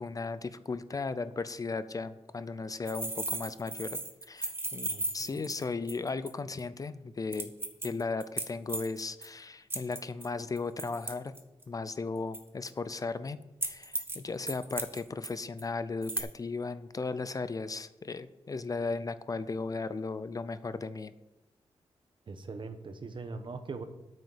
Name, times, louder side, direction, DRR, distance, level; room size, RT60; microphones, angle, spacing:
voice 1, 0.0-4.0 4.3-7.5 7.8-11.3 11.7-21.1, left 4 dB, 35° left, 14 dB, 0.5 m, -36 dB
sound 1, 2.9-6.3 6.6-6.7 7.3-9.3 9.7-11.6 12.3-12.7 13.6-14.2 14.5-15.3 15.6-15.7 16.0-16.2, right 2 dB, 20° right, 1.2 m, -36 dB
voice 2, 4.9-5.4 22.3-23.8, right 4 dB, 50° right, 9 dB, 1.0 m, -41 dB
8.8 x 6.4 x 7.2 m, 0.96 s
wide cardioid pair, 125°, 11 cm